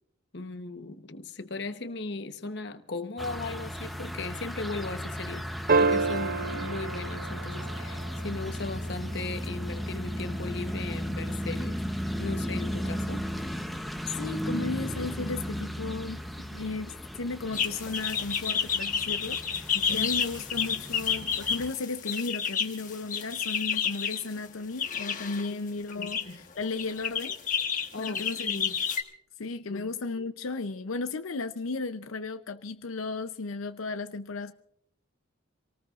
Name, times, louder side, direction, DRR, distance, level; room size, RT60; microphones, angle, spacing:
voice 1, 0.3-5.5 5.8-11.8 12.2-13.2 19.7-20.1 26.0-26.4 27.9-28.8 29.7-29.9, left 3 dB, 55° left, 1.0 m, -37 dB
sound 1, 3.2-21.7, equal, ahead, 0.8 m, -35 dB
sound 2, 5.7-8.2 10.4-10.5, right 4 dB, 45° right, 0.5 m, -27 dB
voice 2, 14.2-27.4 28.0-28.5 29.4-34.5, left 3 dB, 90° left, 0.6 m, -35 dB
sound 3, 17.5-24.2 24.8-25.5 25.9-26.2 26.8-29.0, left 7 dB, 40° left, 1.2 m, -30 dB
27.0 x 18.5 x 2.5 m
head